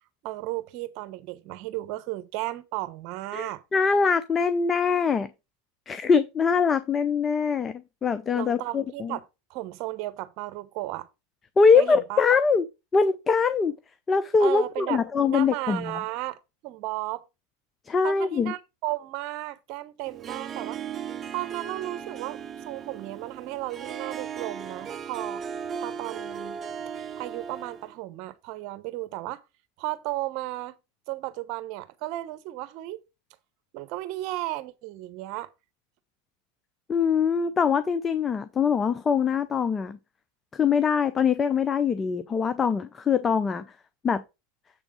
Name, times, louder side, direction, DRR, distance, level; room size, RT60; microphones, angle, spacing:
voice 1, 0.2-3.6 8.3-9.2 9.5-11.1 11.7-12.2 14.4-15.0 15.3-17.2 18.0-20.8 21.3-25.4 25.8-26.6 27.2-29.4 29.8-30.7 31.1-33.0 33.7-35.5, right 17 dB, 55° right, 1.0 m, -34 dB
voice 2, 3.3-5.3 5.9-9.2 11.6-12.7 12.9-13.8 14.1-16.0 17.9-18.5 36.9-40.0 40.5-43.7 44.0-44.2, left 5 dB, 25° left, 0.6 m, -23 dB
Harp, 20.0-27.9, right 7 dB, 30° right, 0.6 m, -37 dB
7.7 x 3.5 x 6.2 m
hypercardioid pair, 105°, 0 cm